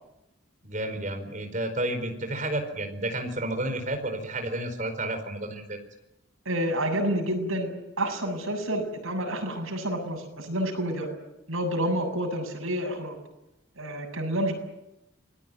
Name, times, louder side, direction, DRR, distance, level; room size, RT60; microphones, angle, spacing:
voice 1, 0.6-5.8, right 1 dB, 40° right, 6 dB, 4.7 m, -31 dB
voice 2, 6.5-7.7 8.0-11.1 11.5-13.2 13.8-14.5, right 1 dB, 90° right, 3 dB, 7.4 m, -29 dB
28.0 x 20.0 x 9.3 m, 0.93 s
head